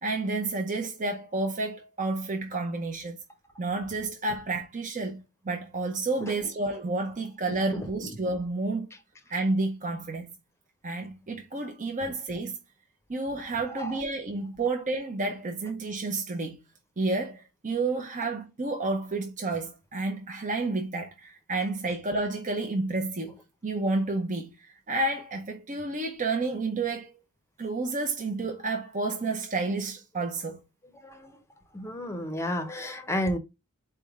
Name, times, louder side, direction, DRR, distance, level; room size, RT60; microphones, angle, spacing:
voice 1, 0.0-3.2 3.6-5.2 5.4-8.9 9.3-10.3 10.8-12.5 13.1-16.6 17.0-27.1 27.6-30.6, right 3 dB, 35° right, 0.8 m, -30 dB
voice 2, 31.0-31.3 31.7-33.4, equal, 10° left, 0.8 m, -31 dB
4.2 x 3.5 x 3.6 m
head